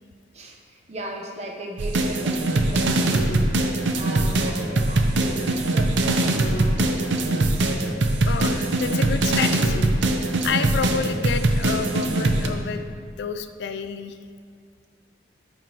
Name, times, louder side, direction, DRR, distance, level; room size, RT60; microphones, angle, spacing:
voice 1, 0.3-7.7, right 1 dB, 35° right, 0 dB, 0.7 m, -37 dB
sound 1, 1.8-12.5, right 2 dB, 85° right, 0.6 m, -22 dB
voice 2, 8.3-10.1 10.4-12.8 13.2-14.2, left 6 dB, 70° left, 9 dB, 0.3 m, -29 dB
9.2 x 5.8 x 2.9 m, 2.1 s
head